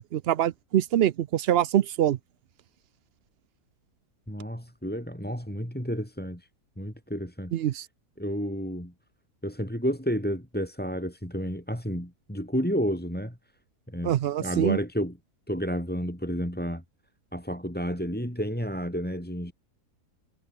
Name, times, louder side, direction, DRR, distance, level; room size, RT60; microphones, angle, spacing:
voice 1, 0.0-2.2 7.5-7.9 14.0-14.8, right 11 dB, 80° right, 0.5 m, -24 dB
voice 2, 4.3-6.5 6.8-7.6 8.2-8.9 9.4-13.4 13.9-15.2 15.5-16.8 17.3-19.5, equal, 5° left, 5.4 m, -31 dB
omnidirectional pair, 1.7 m